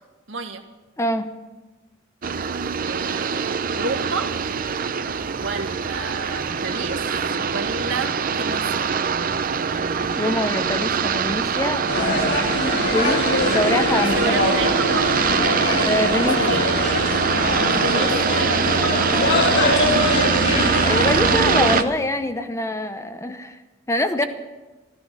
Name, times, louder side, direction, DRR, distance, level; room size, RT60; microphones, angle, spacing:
voice 1, 0.3-0.6 2.8-4.3 5.4-7.1 7.4-8.9 14.1-15.1 15.5-17.2 17.7-19.4, right 3 dB, 70° right, 5 dB, 1.6 m, -31 dB
voice 2, 1.0-1.3 10.2-12.3 12.9-14.2 15.9-16.6 20.8-23.6 23.9-24.2, left 1 dB, 15° left, 9 dB, 0.7 m, -24 dB
sound 1, 2.2-21.8, right 6 dB, 45° right, 0.6 m, -23 dB
sound 2, 11.9-21.8, left 2 dB, 55° left, 1.9 m, -23 dB
14.5 x 13.0 x 6.6 m, 1.2 s
head